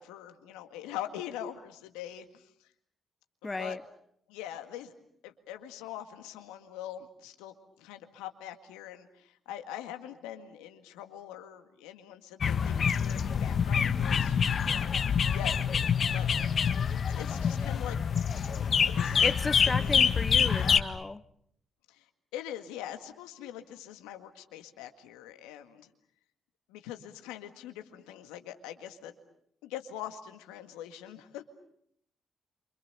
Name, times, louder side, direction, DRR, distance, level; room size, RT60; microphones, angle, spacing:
voice 1, 0.0-2.7 3.4-3.8 4.3-4.9 5.2-14.4 14.6-15.8 16.1-16.3 16.9-18.0 18.8-20.1 20.5-20.8 21.9-25.9 26.7-29.1 29.6-31.4, left 11 dB, 85° left, 1.9 m, -43 dB
voice 2, 3.4-3.8 19.2-21.2, left 3 dB, 30° left, 1.0 m, -34 dB
sound 1, 12.4-20.8, left 7 dB, 55° left, 1.6 m, -26 dB
28.5 x 26.0 x 6.8 m
hypercardioid pair, 45°, 0 cm